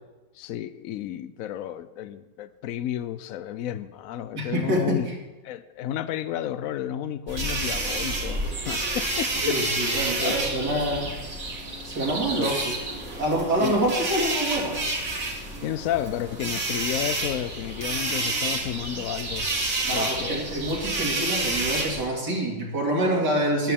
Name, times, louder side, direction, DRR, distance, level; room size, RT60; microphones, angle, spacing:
voice 1, 0.3-5.1 5.4-9.6 10.2-10.4 12.3-12.6 13.6-13.8 15.6-19.5 19.9-20.5, left 11 dB, 75° left, 14 dB, 0.7 m, -32 dB
voice 2, 4.3-5.0 9.4-11.1 11.8-12.7 13.2-14.8 19.8-23.7, right 1 dB, 65° right, -2 dB, 2.9 m, -26 dB
sound 1, 7.3-22.1, right 2 dB, 45° right, 2.3 m, -29 dB
14.0 x 10.5 x 3.6 m, 1.2 s
omnidirectional pair, 2.0 m